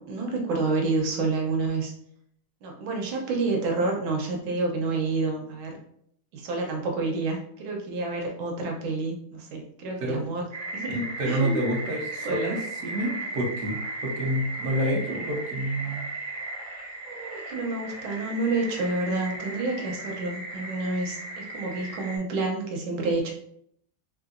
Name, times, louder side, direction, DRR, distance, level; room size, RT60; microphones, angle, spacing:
voice 1, 0.0-1.9 2.6-5.8 6.3-10.4 10.7-10.9 11.2-11.6 12.2-12.5 13.2-13.3 17.1-23.3, right 3 dB, 90° right, 1 dB, 1.6 m, -29 dB
sound 1, 10.5-22.2, right 2 dB, 40° right, 0.7 m, -36 dB
voice 2, 10.9-16.1, right 1 dB, 60° right, -1 dB, 1.3 m, -28 dB
3.7 x 3.4 x 2.5 m, 0.69 s
omnidirectional pair, 2.2 m